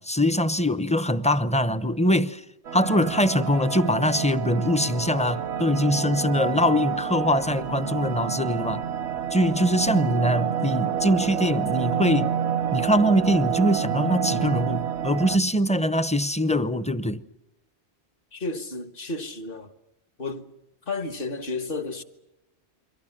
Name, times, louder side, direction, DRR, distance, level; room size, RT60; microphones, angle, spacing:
voice 1, 0.0-2.4 2.7-8.8 9.3-12.4 12.7-17.2, equal, 5° left, 0.7 m, -23 dB
sound 1, 2.6-15.4, right 8 dB, 75° right, 1.3 m, -28 dB
voice 2, 18.3-19.7 20.2-20.5 20.9-22.0, left 3 dB, 55° left, 1.7 m, -32 dB
29.5 x 23.5 x 6.0 m
omnidirectional pair, 1.1 m